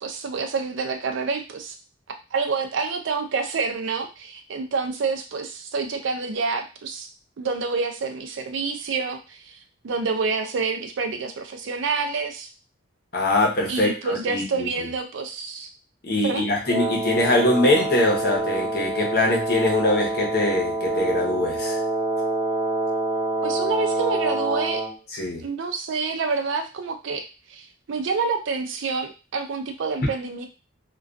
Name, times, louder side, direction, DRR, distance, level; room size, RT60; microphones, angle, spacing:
voice 1, 0.0-1.8 2.3-7.1 7.4-12.5 13.7-15.7 16.2-16.5 23.4-24.9 25.4-30.5, right 4 dB, 70° right, 6 dB, 0.4 m, -28 dB
voice 2, 13.1-14.7 16.0-21.8 25.1-25.4, left 1 dB, 50° left, -1 dB, 0.7 m, -23 dB
Wind instrument woodwind instrument, 16.6-25.0, right 2 dB, 15° right, 0.6 m, -26 dB
2.3 x 2.3 x 2.4 m, 0.31 s
head